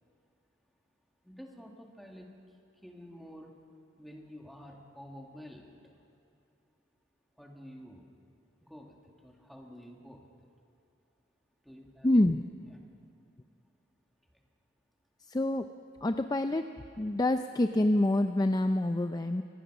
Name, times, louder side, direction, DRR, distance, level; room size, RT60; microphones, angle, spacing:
voice 1, 1.2-2.3 2.8-3.6 4.0-5.9 7.4-8.1 8.6-10.5 11.6-12.1 12.7-12.8 14.3-14.4, equal, ahead, 0 dB, 2.2 m, -50 dB
voice 2, 12.0-12.4 15.2-15.7 16.0-16.7 17.0-19.4, left 1 dB, 20° left, 8 dB, 0.5 m, -27 dB
25.0 x 18.0 x 6.1 m, 2.7 s
head